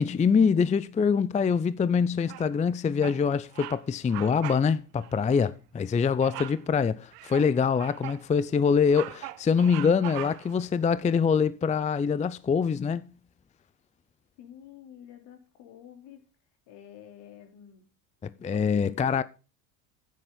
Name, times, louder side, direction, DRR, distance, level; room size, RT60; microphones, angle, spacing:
voice 1, 0.0-13.1 18.2-19.2, left 6 dB, 15° left, 0.5 m, -24 dB
Bird vocalization bird call bird song, 2.3-2.7 3.0-3.2 3.5-3.8 4.1-4.7 5.0-5.2 6.2-6.6 7.1-8.2 8.7-10.6, right 18 dB, 80° right, 0.9 m, -40 dB
voice 2, 14.4-16.2 16.7-17.9 18.5-19.2, left 9 dB, 65° left, 3.3 m, -49 dB
11.0 x 9.3 x 3.7 m
supercardioid pair, 80°, 46 cm